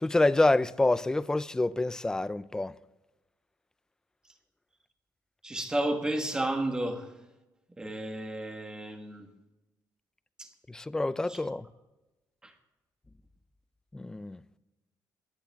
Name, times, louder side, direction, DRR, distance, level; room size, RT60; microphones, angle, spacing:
voice 1, 0.0-2.7 10.7-11.6 13.9-14.4, left 2 dB, 10° left, 0.4 m, -27 dB
voice 2, 5.4-7.1 7.8-9.3 10.4-10.5 11.3-11.4, right 1 dB, 10° right, 1.5 m, -32 dB
23.5 x 10.5 x 3.5 m
cardioid pair, 165°, 7 cm